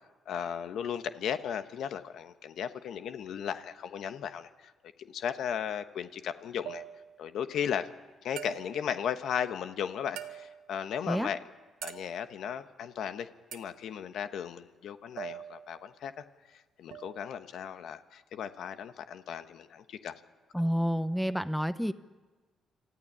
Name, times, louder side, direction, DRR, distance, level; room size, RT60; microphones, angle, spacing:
voice 1, 0.3-4.7 5.0-6.8 7.2-7.9 8.2-11.4 11.8-20.1, left 8 dB, 75° left, 10 dB, 1.2 m, -36 dB
sound 1, 6.7-7.2 8.4-8.9 10.2-10.7 11.8-12.3 13.5-13.8 15.2-15.9 16.9-17.3, right 11 dB, 85° right, 1.0 m, -44 dB
voice 2, 20.5-21.9, equal, ahead, 13 dB, 0.9 m, -29 dB
26.5 x 14.5 x 10.0 m, 1.3 s
cardioid pair, 90°, 0 cm